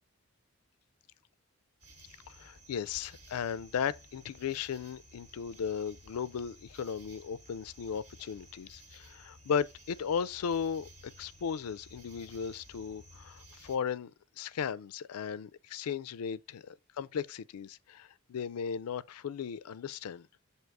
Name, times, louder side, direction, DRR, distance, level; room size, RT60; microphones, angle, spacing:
sound 1, 1.8-13.8, equal, 80° right, 1.8 m, -55 dB
voice 1, 2.3-14.1 14.4-20.3, left 7 dB, 80° left, 0.4 m, -36 dB
7.7 x 2.8 x 4.7 m
head